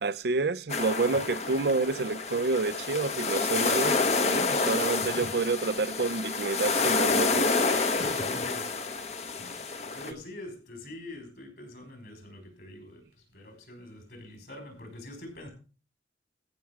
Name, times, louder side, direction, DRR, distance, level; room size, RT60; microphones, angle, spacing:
voice 1, 0.0-7.5, right 3 dB, 60° right, 0.6 m, -29 dB
sound 1, 0.7-10.1, left 4 dB, 35° left, 1.1 m, -28 dB
voice 2, 8.0-8.6 9.4-13.0 13.3-15.5, left 1 dB, 55° left, 5.2 m, -44 dB
14.5 x 6.2 x 6.0 m
head